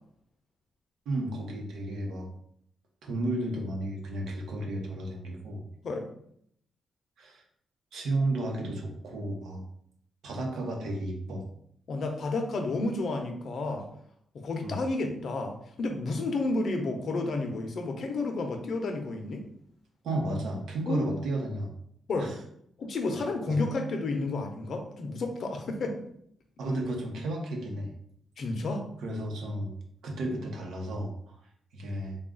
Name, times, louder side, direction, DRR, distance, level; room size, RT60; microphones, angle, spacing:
voice 1, 1.1-2.3 3.0-5.6 7.2-7.4 7.9-9.6 10.2-11.4 14.6-14.8 20.0-21.7 22.2-22.3 23.5-23.6 26.6-27.9 29.0-29.7 30.0-31.1 31.7-32.2, right 1 dB, 85° right, 1 dB, 0.9 m, -33 dB
voice 2, 11.9-13.9 14.3-19.4 20.9-21.1 22.1-22.4 22.8-26.0 28.4-28.8, left 2 dB, 60° left, 4 dB, 0.6 m, -31 dB
3.5 x 2.4 x 3.8 m, 0.69 s
cardioid pair, 120°, 0 cm